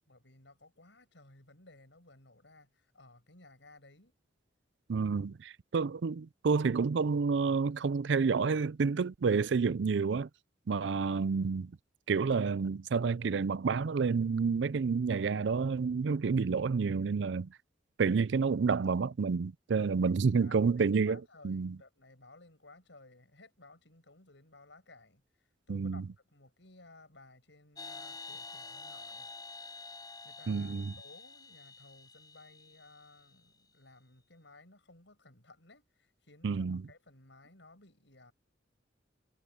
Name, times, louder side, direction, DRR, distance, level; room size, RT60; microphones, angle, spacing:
voice 1, 0.1-4.1 19.8-25.2 25.7-29.3 30.2-38.3, left 2 dB, 75° left, 6.7 m, -58 dB
voice 2, 4.9-10.3 10.7-11.7 12.1-17.5 18.0-21.8 25.7-26.1 30.5-30.9 36.4-36.8, right 5 dB, 70° right, 0.4 m, -29 dB
sound 1, 27.8-33.3, left 3 dB, 20° left, 5.6 m, -48 dB
head